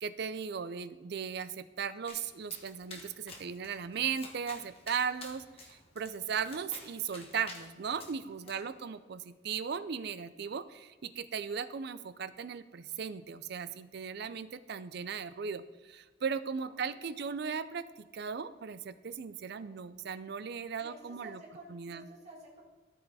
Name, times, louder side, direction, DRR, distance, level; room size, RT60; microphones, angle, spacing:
voice 1, 0.0-21.4 21.7-22.0, right 6 dB, 60° right, 14 dB, 0.4 m, -37 dB
Domestic sounds home sounds, 2.1-8.5, left 3 dB, 30° left, 1.6 m, -51 dB
voice 2, 8.2-9.0 16.6-17.2 19.5-19.8 20.8-22.6, right 1 dB, 35° right, -3 dB, 1.9 m, -54 dB
13.5 x 5.6 x 4.1 m, 1.3 s
head